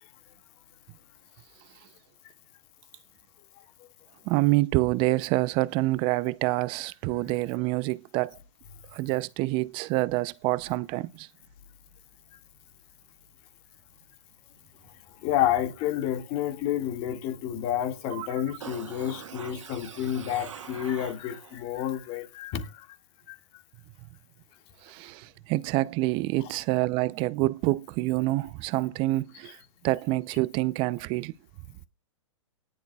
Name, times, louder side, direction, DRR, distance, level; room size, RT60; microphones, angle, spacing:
voice 1, 4.3-8.4 8.9-11.3 18.2-18.3 24.8-29.6 29.8-31.3, right 19 dB, 30° right, 0.5 m, -27 dB
voice 2, 15.2-22.9 23.3-23.4 26.4-26.5, left 11 dB, 40° left, 1.9 m, -30 dB
sound 1, 18.6-21.6 21.9-22.0, right 9 dB, 75° right, 1.5 m, -43 dB
18.0 x 10.5 x 2.3 m
hypercardioid pair, 135°, 16 cm